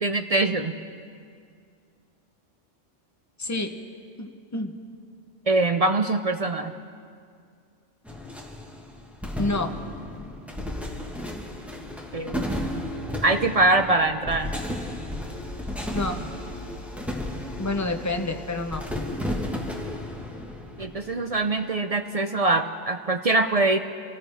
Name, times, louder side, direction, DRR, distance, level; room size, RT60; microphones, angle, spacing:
voice 1, 0.0-0.7 5.5-6.7 12.1-12.9 13.2-14.5 20.8-23.8, right 2 dB, 50° right, 7 dB, 0.4 m, -23 dB
voice 2, 3.4-3.7 4.2-4.8 9.4-9.7 15.9-16.2 17.6-18.8, left 2 dB, 15° left, 5 dB, 0.7 m, -28 dB
sound 1, 8.0-21.6, left 1 dB, ahead, 1.4 m, -33 dB
27.0 x 15.0 x 3.5 m, 2.2 s
omnidirectional pair, 1.3 m